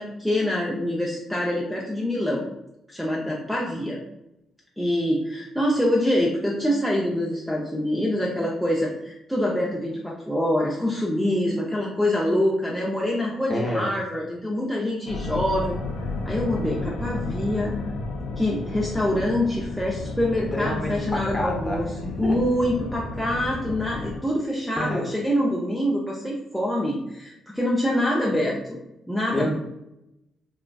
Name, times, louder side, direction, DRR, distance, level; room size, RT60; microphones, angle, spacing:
voice 1, 0.0-2.4 2.9-4.0 4.8-15.8 16.2-17.7 18.4-21.9 22.2-28.8 29.1-29.5, left 1 dB, ahead, -3 dB, 0.5 m, -25 dB
voice 2, 13.5-13.9 20.5-22.4 24.8-25.0 29.3-29.5, left 1 dB, 25° left, -1 dB, 0.9 m, -29 dB
sound 1, 15.1-24.2, left 2 dB, 80° left, 0.5 m, -32 dB
3.6 x 2.3 x 2.2 m, 0.87 s
cardioid pair, 90°, 0 cm